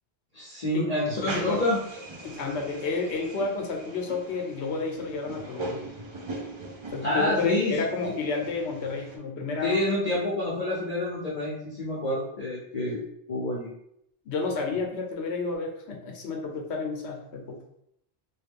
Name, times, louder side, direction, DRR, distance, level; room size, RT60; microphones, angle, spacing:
voice 1, 0.3-1.8 7.0-7.8 9.6-13.0 13.3-13.7, left 1 dB, 40° left, -6 dB, 0.7 m, -28 dB
voice 2, 1.2-1.6 2.2-5.8 6.9-9.7 14.3-17.6, left 3 dB, 85° left, 1 dB, 1.0 m, -31 dB
sound 1, 1.3-9.2, right 2 dB, 40° right, 0.4 m, -40 dB
3.1 x 2.3 x 3.4 m, 0.75 s
omnidirectional pair, 1.1 m